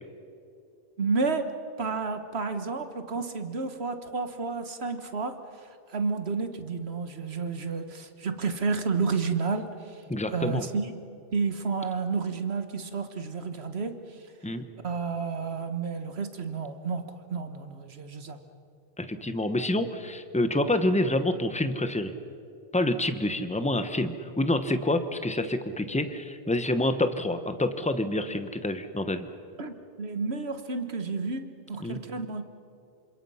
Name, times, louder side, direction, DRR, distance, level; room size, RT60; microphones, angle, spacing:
voice 1, 1.0-10.0 10.3-10.9 11.3-14.2 14.8-18.4 29.6-32.4, right 4 dB, 85° right, 8 dB, 1.7 m, -31 dB
voice 2, 10.1-10.7 14.4-14.7 19.0-22.1 22.7-29.3 31.8-32.0, left 1 dB, 5° left, 9 dB, 1.0 m, -27 dB
28.0 x 26.5 x 5.7 m, 2.6 s
omnidirectional pair, 1.0 m